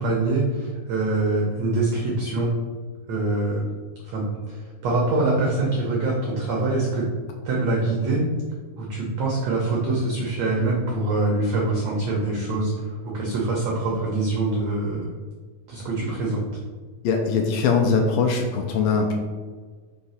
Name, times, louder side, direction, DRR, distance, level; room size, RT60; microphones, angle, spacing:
voice 1, 0.0-2.5 3.1-3.7 4.0-7.1 7.4-8.3 8.8-15.1 15.7-16.4, right 2 dB, 90° right, -2 dB, 1.5 m, -24 dB
voice 2, 17.0-19.1, left 5 dB, 80° left, 2 dB, 2.1 m, -21 dB
5.9 x 3.2 x 5.5 m, 1.5 s
omnidirectional pair, 4.4 m